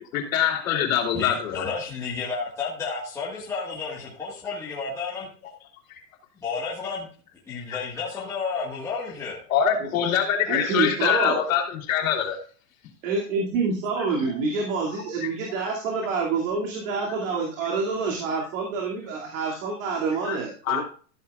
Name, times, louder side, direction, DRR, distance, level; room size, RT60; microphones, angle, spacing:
voice 1, 0.0-1.7 7.7-7.8 9.5-12.4 20.2-20.4 20.7-20.8, left 8 dB, 55° left, 2 dB, 3.3 m, -24 dB
voice 2, 1.1-5.3 6.4-7.1 7.5-9.4, left 5 dB, 5° left, -6 dB, 1.6 m, -31 dB
voice 3, 10.5-11.4 13.0-20.8, right 4 dB, 50° right, -1 dB, 2.7 m, -27 dB
14.0 x 9.1 x 2.4 m, 0.40 s
supercardioid pair, 180°, 48 cm